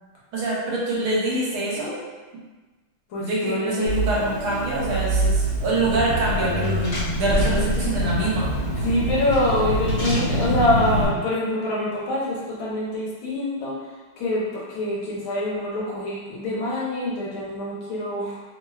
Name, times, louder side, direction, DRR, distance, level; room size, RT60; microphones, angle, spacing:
voice 1, 0.3-2.0 3.2-8.5, right 2 dB, 75° right, -5 dB, 1.5 m, -25 dB
voice 2, 3.1-3.9 8.8-13.8 14.2-18.4, left 1 dB, 70° left, -6 dB, 1.4 m, -25 dB
Car / Engine, 3.9-11.1, right 1 dB, 55° left, 1.4 m, -25 dB
3.5 x 2.2 x 2.2 m, 1.3 s
omnidirectional pair, 2.4 m